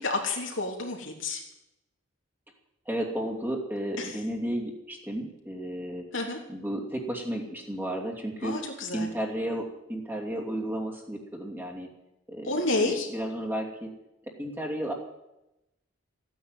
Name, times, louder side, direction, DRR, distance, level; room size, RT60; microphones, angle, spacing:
voice 1, 0.0-1.4 4.0-4.1 6.1-6.4 8.4-9.1 12.4-13.1, left 2 dB, 65° left, 1 dB, 3.3 m, -30 dB
voice 2, 2.9-6.0 6.5-8.6 8.9-11.9 12.3-12.5 12.8-13.9 14.3-14.9, right 1 dB, 10° right, -1 dB, 2.8 m, -33 dB
15.0 x 10.0 x 9.2 m, 0.90 s
head